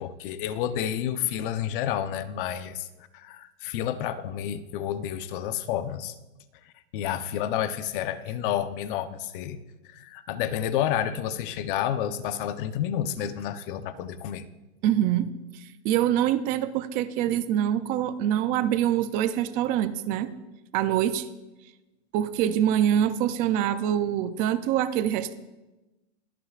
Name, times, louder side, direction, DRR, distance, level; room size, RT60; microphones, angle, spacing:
voice 1, 0.0-2.9 3.1-6.2 6.9-9.6 9.8-14.4, left 10 dB, 45° left, 11 dB, 0.8 m, -30 dB
voice 2, 14.8-20.3 20.7-21.3 22.1-25.3, right 11 dB, 25° right, 13 dB, 0.4 m, -25 dB
23.5 x 9.8 x 2.4 m, 1.0 s
supercardioid pair, 145°, 36 cm